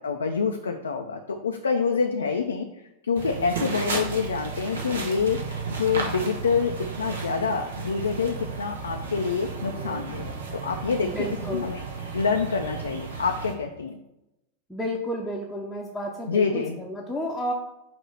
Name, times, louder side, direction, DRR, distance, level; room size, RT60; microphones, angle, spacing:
voice 1, 0.0-2.7 3.0-11.9 12.1-14.0 16.3-16.8, left 5 dB, 70° left, 3 dB, 0.5 m, -27 dB
sound 1, 3.2-13.5, right 5 dB, 65° right, 1.2 m, -34 dB
sound 2, 9.6-10.6, right 2 dB, 40° right, 1.8 m, -45 dB
voice 2, 11.0-11.7 14.7-17.5, equal, 5° left, -5 dB, 0.9 m, -31 dB
6.0 x 3.0 x 5.6 m, 0.91 s
figure-of-eight pair, 90°, 0 cm